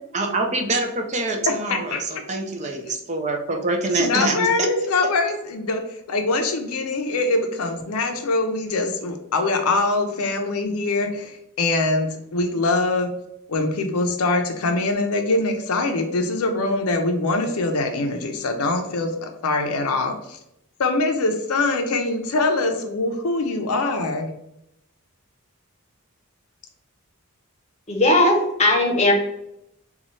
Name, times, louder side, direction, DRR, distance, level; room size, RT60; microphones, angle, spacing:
voice 1, 0.1-4.5, right 2 dB, 30° right, 3 dB, 0.5 m, -25 dB
voice 2, 1.7-2.0 4.0-13.1 13.5-20.4 20.8-24.3, left 2 dB, 75° left, 5 dB, 0.5 m, -23 dB
voice 3, 27.9-29.1, left 1 dB, 30° left, 1 dB, 0.8 m, -18 dB
4.0 x 2.3 x 3.1 m, 0.81 s
head